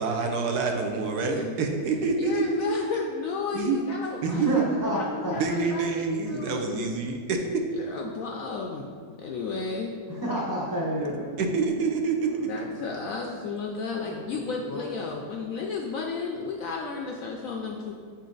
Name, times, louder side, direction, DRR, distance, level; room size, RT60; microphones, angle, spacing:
voice 1, 0.0-2.4 3.5-3.8 4.2-4.7 5.4-7.6 11.4-12.4, right 4 dB, 75° right, 3 dB, 1.1 m, -27 dB
voice 2, 1.2-1.5 2.2-6.9 7.7-8.9 9.2-9.9 12.5-17.9, left 5 dB, 70° left, 0 dB, 0.8 m, -33 dB
voice 3, 4.3-5.4 10.1-11.3 14.0-14.9, equal, 25° left, -5 dB, 0.4 m, -30 dB
6.9 x 4.2 x 3.9 m, 2.1 s
omnidirectional pair, 1.8 m